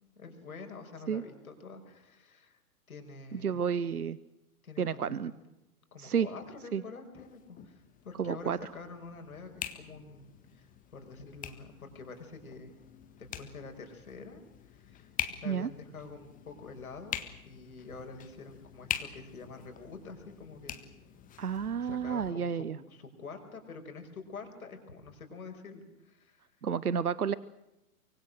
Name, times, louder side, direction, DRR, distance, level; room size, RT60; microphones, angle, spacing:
voice 1, 0.2-2.6 2.9-3.6 4.6-5.4 5.9-12.7 13.2-15.1 15.4-17.2 17.5-20.8 21.8-26.4, left 4 dB, 70° left, 4 dB, 5.7 m, -47 dB
voice 2, 3.3-4.2 4.8-5.3 6.0-6.3 6.7-6.8 8.2-8.6 15.4-15.7 21.4-22.8 26.6-27.3, right 7 dB, 80° right, 19 dB, 0.9 m, -31 dB
sound 1, 7.1-22.3, left 10 dB, 20° left, 1.6 m, -44 dB
24.5 x 24.0 x 6.4 m, 0.93 s
figure-of-eight pair, 110°, 45 cm